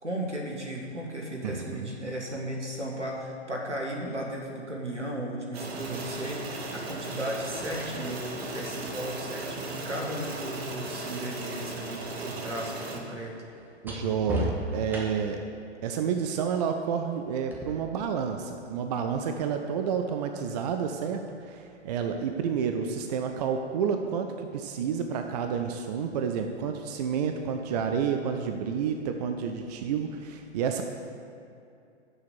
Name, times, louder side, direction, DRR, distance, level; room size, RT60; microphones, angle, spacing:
voice 1, 0.0-13.3, right 1 dB, 90° right, -1 dB, 1.4 m, -35 dB
voice 2, 1.4-1.9 12.2-12.4 13.8-15.4 15.8-30.8, right 7 dB, 35° right, 5 dB, 0.5 m, -30 dB
sound 1, 5.5-13.0, right 3 dB, 60° right, 1.3 m, -37 dB
sound 2, 7.6-11.4 11.7-15.5 17.5-17.7, equal, 5° right, 1.0 m, -39 dB
6.9 x 6.8 x 7.1 m, 2.6 s
figure-of-eight pair, 115°, 34 cm